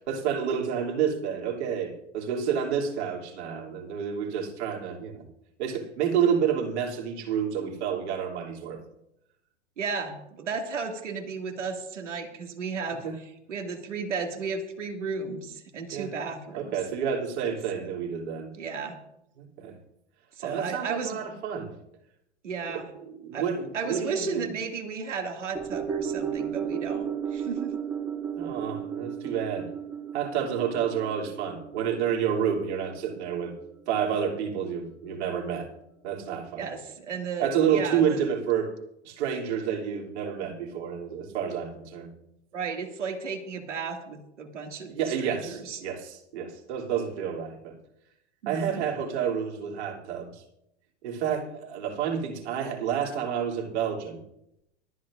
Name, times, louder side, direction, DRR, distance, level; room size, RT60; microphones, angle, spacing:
voice 1, 0.1-5.2 5.6-8.8 13.0-13.1 15.9-16.1 16.5-18.5 19.4-19.7 20.4-21.7 22.7-22.8 23.1-24.5 28.4-29.7 30.1-33.5 33.9-35.7 36.0-36.6 37.4-38.7 39.0-42.1 44.9-47.8 48.5-50.4 51.0-54.2, right 8 dB, 65° right, -1 dB, 2.9 m, -29 dB
voice 2, 9.8-13.1 13.5-16.8 17.7-18.0 18.5-19.0 20.4-21.2 22.4-22.9 23.3-23.5 23.7-27.7 36.5-38.2 42.5-45.8 48.4-48.8, right 5 dB, 90° right, 3 dB, 2.2 m, -34 dB
sound 1, 25.6-34.0 34.3-34.4, right 8 dB, 5° right, 0.4 m, -34 dB
24.5 x 9.3 x 2.5 m, 0.81 s
hypercardioid pair, 115°, 35 cm